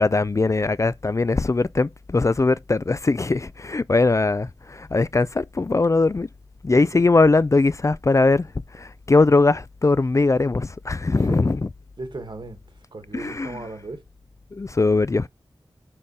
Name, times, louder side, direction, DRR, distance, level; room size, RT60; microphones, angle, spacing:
voice 1, 0.0-6.3 6.6-11.6 13.1-13.6 14.5-15.3, left 3 dB, 35° left, 0.3 m, -20 dB
voice 2, 6.7-7.0 11.2-11.4 12.0-12.6 12.9-14.0, right 2 dB, 55° right, 1.5 m, -36 dB
6.5 x 3.7 x 5.5 m
wide cardioid pair, 85°, 9 cm